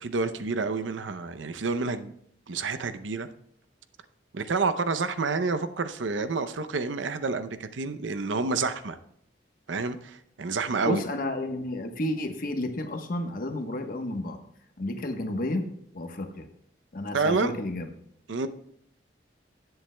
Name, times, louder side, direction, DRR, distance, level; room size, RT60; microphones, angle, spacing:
voice 1, 0.0-2.1 2.5-3.3 4.3-9.0 9.7-11.0 17.1-17.5 18.3-18.5, right 4 dB, 90° right, 11 dB, 0.6 m, -29 dB
voice 2, 10.8-14.4 14.8-15.7 15.9-16.5 16.9-17.9, left 1 dB, 50° left, 5 dB, 1.1 m, -31 dB
17.0 x 7.9 x 2.2 m, 0.70 s
head